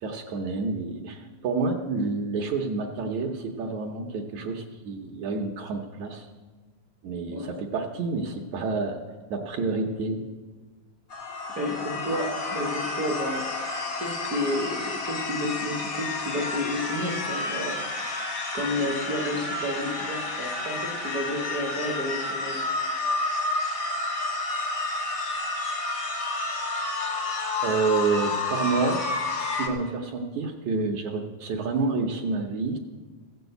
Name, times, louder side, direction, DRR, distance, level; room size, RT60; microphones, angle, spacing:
voice 1, 0.0-6.3 7.0-9.0 9.3-10.2 27.6-29.0 29.4-32.8, right 4 dB, 70° right, 2 dB, 1.9 m, -28 dB
sound 1, 11.1-29.7, left 2 dB, 55° left, 1.1 m, -30 dB
voice 2, 11.5-13.5 14.0-17.8 18.2-18.3 18.5-22.7, left 1 dB, 55° right, 0 dB, 1.0 m, -31 dB
15.0 x 7.1 x 8.0 m, 1.3 s
omnidirectional pair, 4.0 m